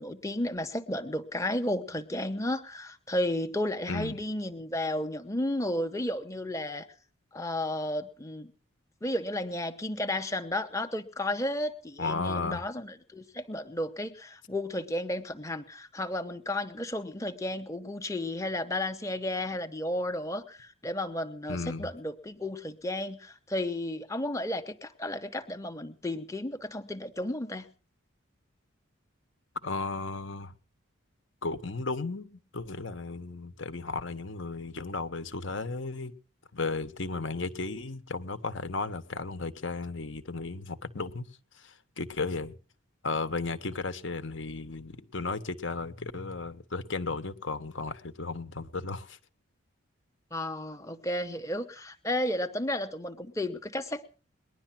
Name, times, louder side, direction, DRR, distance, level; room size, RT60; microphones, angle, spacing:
voice 1, 0.0-6.9 7.3-8.5 9.0-27.7 50.3-54.0, left 1 dB, 15° left, 0.8 m, -33 dB
voice 2, 3.9-4.2 12.0-12.6 21.5-21.9 29.6-30.5 31.4-36.1 36.5-41.3 41.5-42.5 43.0-49.2, left 3 dB, 65° left, 1.2 m, -34 dB
20.0 x 11.5 x 5.9 m
head